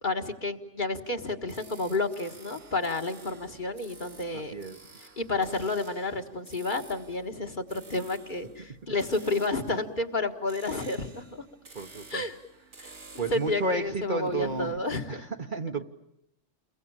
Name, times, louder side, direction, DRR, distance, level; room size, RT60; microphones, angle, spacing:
voice 1, 0.0-4.5 5.0-11.4 12.1-12.4 12.8-15.3, left 2 dB, 45° left, 5 dB, 1.8 m, -31 dB
sound 1, 1.5-14.8, right 5 dB, 80° right, 2.8 m, -51 dB
voice 2, 4.3-4.8 11.7-12.2 13.2-14.7 15.1-15.2 15.5-15.9, right 2 dB, 45° right, 7 dB, 1.3 m, -32 dB
29.5 x 22.0 x 8.8 m, 0.78 s
omnidirectional pair, 1.2 m